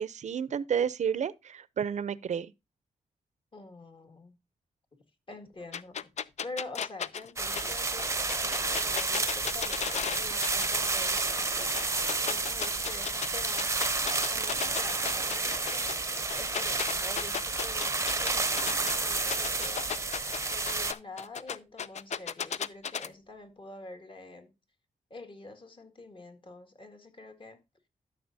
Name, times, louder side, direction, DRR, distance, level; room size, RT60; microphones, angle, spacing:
voice 1, 0.0-2.5, right 7 dB, 65° right, 0.6 m, -31 dB
voice 2, 3.5-4.4 5.3-6.1 6.4-19.9 20.5-24.5 25.1-27.6, left 2 dB, 40° left, 1.9 m, -46 dB
sound 1, 5.7-10.9 11.2-13.3 13.6-18.9 19.3-23.1, left 7 dB, 60° left, 0.5 m, -35 dB
sound 2, 7.4-20.9, right 3 dB, 20° right, 0.7 m, -30 dB
13.0 x 6.5 x 2.7 m
cardioid pair, 80°, 13 cm